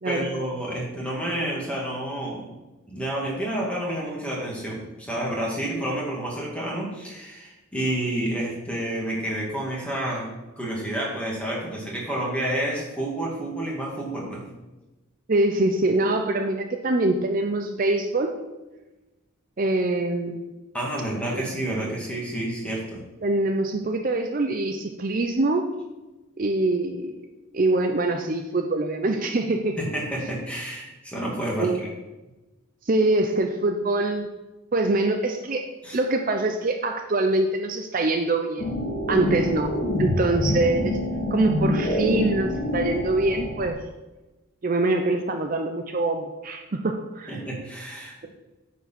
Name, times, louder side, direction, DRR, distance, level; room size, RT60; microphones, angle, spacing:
voice 1, 0.0-2.5 2.9-10.3 10.6-14.4 20.7-23.0 29.8-31.8 35.8-36.0 47.3-48.3, right 1 dB, 5° left, -4 dB, 2.2 m, -29 dB
voice 2, 15.3-18.3 19.6-20.5 21.3-21.4 23.2-25.6 26.4-27.1 27.5-29.8 31.6-31.8 32.9-34.3 34.7-35.7 35.9-38.7 39.1-41.0 41.3-43.8 44.6-47.3, right 2 dB, 40° right, 4 dB, 0.6 m, -24 dB
sound 1, 38.6-43.7, left 1 dB, 45° left, 1.9 m, -26 dB
9.2 x 4.7 x 5.9 m, 1.1 s
head